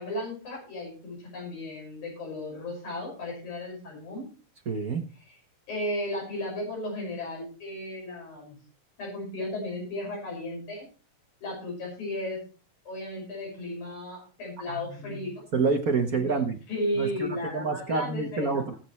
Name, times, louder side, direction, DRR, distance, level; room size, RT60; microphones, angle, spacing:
voice 1, 0.0-4.3 5.2-5.4 5.7-8.6 9.0-10.9 11.4-12.4 12.9-15.3 16.1-18.5, left 1 dB, 85° left, -1 dB, 7.5 m, -34 dB
voice 2, 4.7-5.0 14.7-15.2 15.5-16.6 17.0-18.7, right 4 dB, 55° right, 4 dB, 1.0 m, -28 dB
19.5 x 7.8 x 3.2 m, 0.36 s
omnidirectional pair, 3.3 m